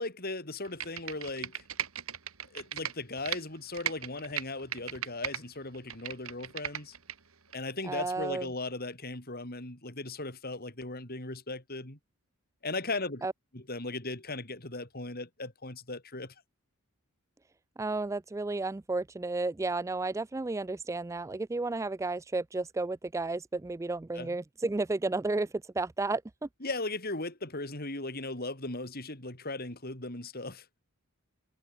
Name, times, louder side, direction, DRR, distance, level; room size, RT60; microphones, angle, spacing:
voice 1, 0.0-1.6 2.5-6.9 7.5-12.0 12.6-13.3 13.5-16.3 24.1-24.4 26.6-30.6, left 2 dB, 45° left, 4.9 m, -37 dB
Computer keyboard, 0.6-3.4 3.7-5.4 5.7-7.1 7.5-7.6, right 10 dB, 70° right, 2.2 m, -36 dB
voice 2, 7.9-8.5 13.2-13.3 17.8-25.5 25.8-26.5, right 3 dB, 15° right, 0.3 m, -32 dB
head